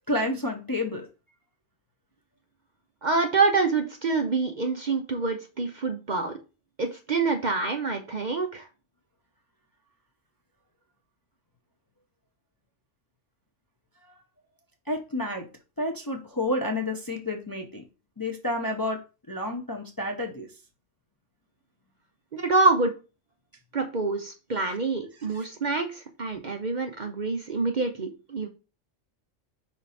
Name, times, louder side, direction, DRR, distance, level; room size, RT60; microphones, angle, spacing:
voice 1, 0.1-1.1 14.1-14.2 14.9-15.5 15.8-17.8 18.2-19.0 19.3-20.5 25.3-25.4, left 1 dB, 20° left, 3 dB, 0.6 m, -30 dB
voice 2, 3.0-6.4 6.8-8.7 22.3-23.0 23.7-28.5, right 3 dB, 45° right, 5 dB, 0.7 m, -26 dB
5.3 x 4.4 x 4.1 m, 0.31 s
omnidirectional pair, 1.3 m